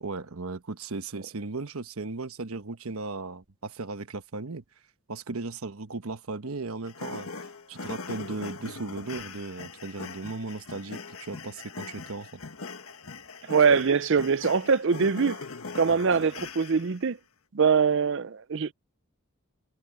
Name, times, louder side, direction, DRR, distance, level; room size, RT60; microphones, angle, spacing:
voice 1, 0.0-4.6 5.1-7.3 7.7-12.4, right 3 dB, 80° right, 1.1 m, -36 dB
sound 1, 6.9-17.0, left 4 dB, 75° left, 1.6 m, -41 dB
voice 2, 13.5-15.4 15.7-17.2 17.5-18.7, right 5 dB, 60° right, 0.5 m, -23 dB
head